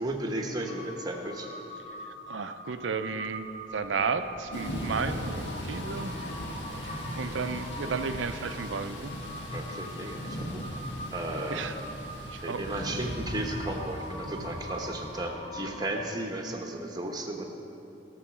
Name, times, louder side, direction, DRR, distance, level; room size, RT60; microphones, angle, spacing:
voice 1, 0.0-1.5 7.3-8.0 8.4-8.7 9.5-10.7 11.1-11.7 12.4-17.5, right 1 dB, 20° right, 2 dB, 1.1 m, -35 dB
Crow, 0.6-16.1, equal, 40° left, 1.2 m, -43 dB
voice 2, 2.3-6.2 6.8-9.1 11.5-11.8 12.3-12.9, right 5 dB, 85° right, 9 dB, 0.5 m, -33 dB
Thunder / Rain, 4.5-15.3, equal, 75° left, 1.7 m, -38 dB
16.5 x 6.7 x 6.1 m, 2.8 s
head